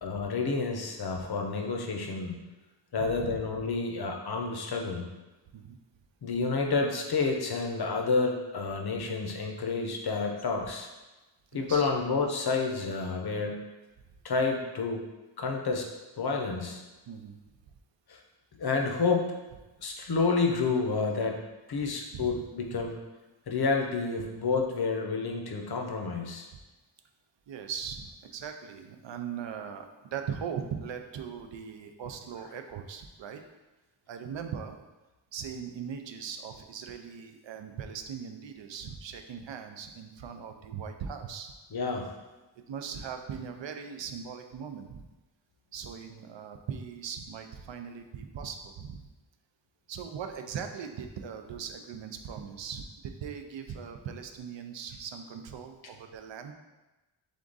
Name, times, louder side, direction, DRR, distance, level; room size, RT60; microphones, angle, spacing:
voice 1, 0.0-2.4 2.9-5.1 6.2-10.9 11.5-13.6 14.2-15.1 15.4-15.9 16.2-16.8 18.1-18.2 18.6-19.3 19.8-21.4 21.7-23.0 23.5-26.5 41.7-42.1, left 4 dB, 55° left, 2 dB, 0.6 m, -29 dB
voice 2, 3.0-3.4 5.5-5.8 11.5-11.9 17.1-17.4 22.1-22.4 22.7-22.8 27.5-33.4 34.1-34.8 35.3-41.5 42.7-45.0 45.7-49.0 49.9-56.5, right 7 dB, 75° right, 6 dB, 0.5 m, -39 dB
3.6 x 3.6 x 3.9 m, 1.1 s
wide cardioid pair, 150°, 46 cm